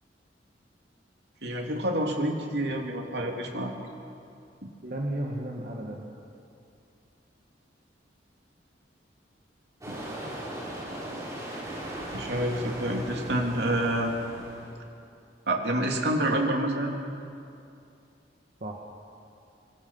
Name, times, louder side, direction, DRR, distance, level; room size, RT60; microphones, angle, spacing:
voice 1, 1.4-3.7 9.9-10.0 12.1-14.1 15.5-16.9, right 1 dB, 70° right, 1 dB, 3.0 m, -28 dB
voice 2, 4.8-6.2 18.6-18.8, right 1 dB, 50° right, -1 dB, 1.9 m, -34 dB
sound 1, 9.8-14.7, right 1 dB, 20° right, 7.0 m, -38 dB
25.5 x 25.5 x 5.7 m, 2.5 s
head